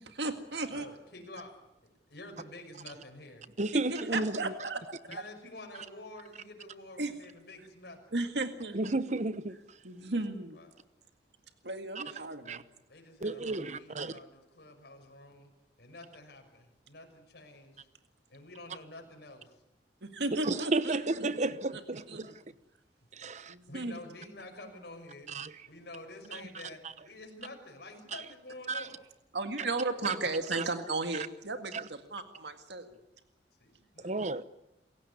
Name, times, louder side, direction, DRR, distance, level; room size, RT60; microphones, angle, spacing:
voice 1, 0.0-0.9 3.7-4.8 7.0-7.1 8.1-9.0 9.8-10.6 11.6-12.6 20.0-21.0 21.7-21.8 22.1-22.2 23.5-24.0 29.3-33.0, right 2 dB, 70° right, 2.0 m, -35 dB
voice 2, 0.7-1.6 1.8-3.5 5.0-8.0 10.5-10.7 12.9-15.5 15.8-17.9 18.3-19.6 21.0-21.1 21.4-21.5 22.2-22.3 23.7-25.3 25.7-29.0 33.6-34.1, left 2 dB, 60° left, 5.9 m, -49 dB
voice 3, 3.6-4.5 8.7-9.6 12.0-12.1 12.5-12.6 13.2-14.2 20.3-22.3 23.1-23.5 25.3-25.5 28.1-28.2 28.7-28.9 30.5-30.7 31.7-31.8 34.0-34.4, right 2 dB, 40° right, 1.0 m, -32 dB
28.0 x 16.5 x 9.7 m
head